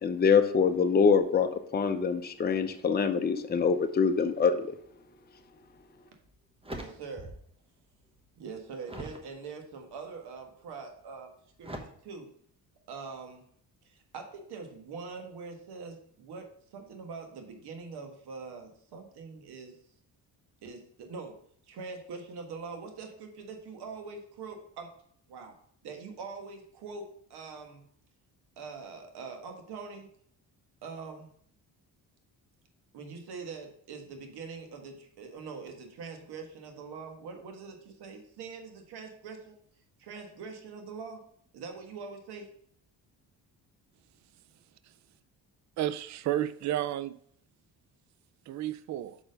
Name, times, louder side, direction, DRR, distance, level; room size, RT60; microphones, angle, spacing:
voice 1, 0.0-4.8, left 5 dB, 25° left, 0.7 m, -25 dB
sound 1, 5.7-5.8 6.3-7.6 7.9-9.3 9.9-10.3 11.6-11.8, right 1 dB, 15° right, 1.1 m, -43 dB
voice 2, 6.7-7.3 8.4-11.3 11.6-12.3 12.9-13.4 13.8-16.4 16.7-19.7 20.6-21.4 21.7-24.9 25.3-25.5 25.8-27.0 27.3-27.8 28.6-30.1 30.8-31.3 32.9-39.5 40.0-41.2 41.5-42.5, right 4 dB, 75° right, 1.6 m, -43 dB
voice 3, 45.8-47.2 48.5-49.2, right 12 dB, 45° right, 0.4 m, -31 dB
5.9 x 4.4 x 5.2 m
cardioid pair, 85°, 40 cm